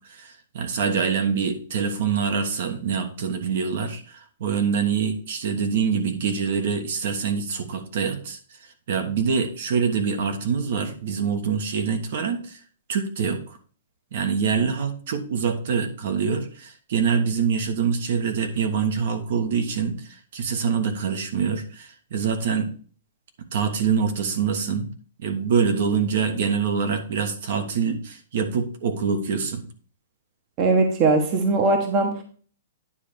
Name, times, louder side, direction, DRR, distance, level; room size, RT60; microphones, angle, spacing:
voice 1, 0.1-12.6 12.9-13.6 14.1-22.7 23.5-24.9 25.2-29.6, right 6 dB, 50° right, 6 dB, 1.3 m, -25 dB
voice 2, 30.6-32.2, right 3 dB, 25° right, 4 dB, 1.1 m, -20 dB
9.7 x 3.3 x 6.9 m, 0.42 s
hypercardioid pair, 175°, 0 cm